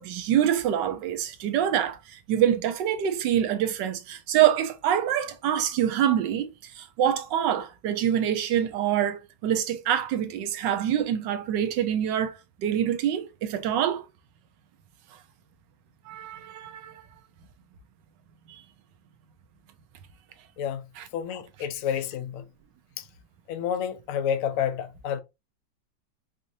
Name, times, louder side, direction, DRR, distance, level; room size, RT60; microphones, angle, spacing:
voice 1, 0.0-12.3 12.6-14.0 16.1-16.9 18.5-18.6 21.0-21.1, right 10 dB, 85° right, 1.4 m, -25 dB
voice 2, 21.1-22.4 23.0-23.1 23.5-25.2, left 8 dB, 65° left, 0.8 m, -29 dB
5.2 x 2.6 x 2.6 m
omnidirectional pair, 1.9 m